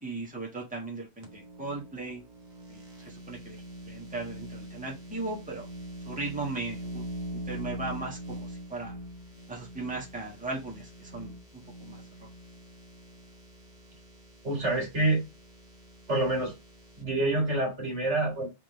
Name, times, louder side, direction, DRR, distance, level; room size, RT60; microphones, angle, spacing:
voice 1, 0.0-2.2 2.7-3.6 3.9-5.7 6.1-9.0 9.5-12.3, right 3 dB, 5° right, 1.3 m, -37 dB
sound 1, 1.2-17.0, equal, 40° right, 1.2 m, -43 dB
voice 2, 14.4-15.2 16.1-16.5 17.0-18.5, right 2 dB, 70° right, 2.3 m, -27 dB
3.7 x 3.6 x 3.2 m
omnidirectional pair, 1.2 m